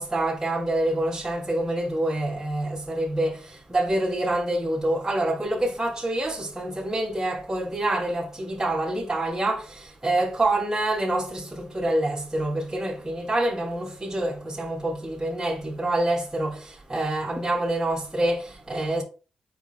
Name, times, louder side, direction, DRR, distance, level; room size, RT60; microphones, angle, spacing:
voice 1, 0.0-19.0, right 1 dB, 15° right, 2.8 m, -26 dB
7.0 x 5.8 x 2.4 m
supercardioid pair, 45°, 3 cm